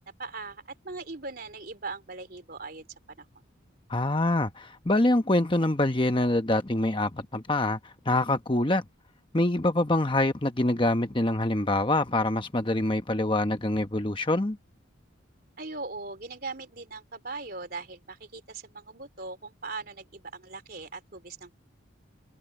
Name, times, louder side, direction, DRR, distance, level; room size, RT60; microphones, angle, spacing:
voice 1, 0.2-2.9 3.2-3.3 15.6-21.6, right 3 dB, 45° right, 3.4 m, -40 dB
voice 2, 3.9-8.8 9.3-14.6, left 1 dB, 25° left, 1.0 m, -25 dB
head